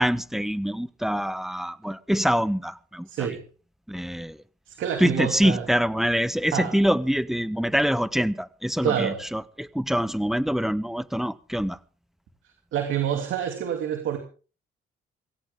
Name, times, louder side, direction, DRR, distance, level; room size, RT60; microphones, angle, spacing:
voice 1, 0.0-3.3 3.9-4.4 5.0-11.8, equal, ahead, 1.1 m, -25 dB
voice 2, 3.1-3.4 4.7-5.7 6.5-6.8 8.8-9.2 12.7-14.2, right 9 dB, 80° right, 3.0 m, -27 dB
19.5 x 17.0 x 3.7 m
cardioid pair, 90°, 20 cm